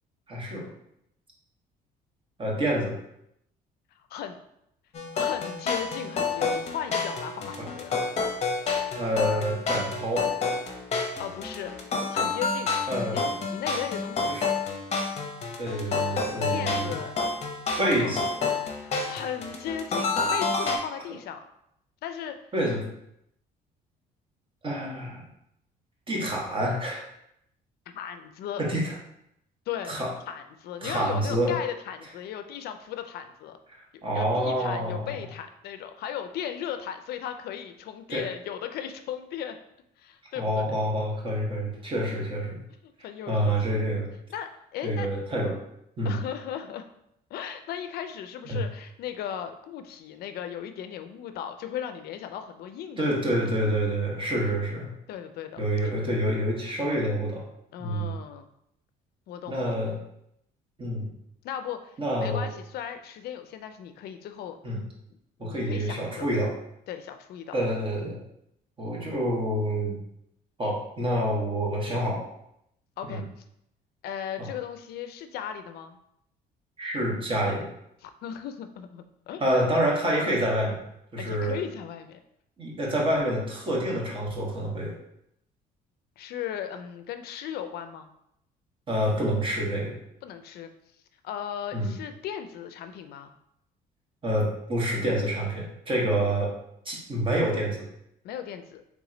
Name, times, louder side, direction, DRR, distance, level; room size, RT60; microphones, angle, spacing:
voice 1, 0.3-0.7 2.4-3.0 7.6-7.7 8.9-10.3 12.9-13.2 14.3-14.5 15.6-17.0 17.8-18.3 22.5-22.8 24.6-25.2 26.1-27.0 28.6-28.9 29.9-30.1 30.8-31.5 33.7-35.1 38.1-38.2 40.4-42.6 43.3-44.1 44.8-45.6 46.0-46.2 48.5-48.6 53.0-54.9 55.6-57.4 57.8-58.1 59.5-59.9 60.8-61.1 62.0-62.5 64.6-64.8 65.4-66.6 67.5-68.2 68.8-70.0 70.6-72.3 73.1-73.2 74.4-74.5 76.8-77.7 79.4-80.8 81.1-81.6 82.6-84.9 88.9-90.0 91.7-91.9 94.2-96.5 96.8-97.9, right 1 dB, 30° right, -2 dB, 1.2 m, -27 dB
sound 1, 4.9-20.8, left 4 dB, 40° left, 0.8 m, -29 dB
voice 2, 5.1-8.0 11.2-11.7 12.1-14.3 16.5-17.1 17.8-18.2 18.8-21.4 22.0-22.3 27.9-28.6 29.7-30.0 30.3-33.6 34.1-39.6 40.0-40.8 42.1-43.8 44.3-45.1 46.0-46.9 47.3-53.1 55.1-55.9 57.7-58.5 59.3-59.8 61.4-64.6 65.1-66.3 66.9-67.5 73.0-73.2 74.0-76.0 78.0-79.4 81.2-82.2 86.2-88.1 90.2-90.7 91.2-93.3 98.2-98.8, left 9 dB, 70° left, 8 dB, 0.4 m, -37 dB
3.5 x 3.0 x 3.8 m, 0.77 s
cardioid pair, 110°, 17 cm